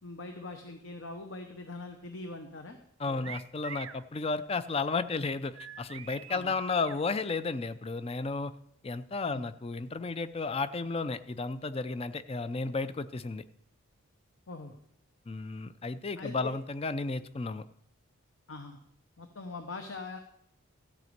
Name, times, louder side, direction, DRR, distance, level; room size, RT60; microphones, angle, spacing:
voice 1, 0.0-2.8 3.0-3.3 6.3-6.5 9.2-9.4 14.5-14.8 16.2-16.5 18.5-18.8 19.2-20.2, left 3 dB, 60° left, 5 dB, 0.9 m, -42 dB
voice 2, 3.0-8.5 8.8-13.4 15.3-17.6, left 3 dB, 25° left, 14 dB, 0.4 m, -33 dB
sound 1, 3.2-4.0 5.5-7.0, right 9 dB, 70° right, 0.6 m, -45 dB
14.0 x 5.1 x 7.9 m, 0.73 s
head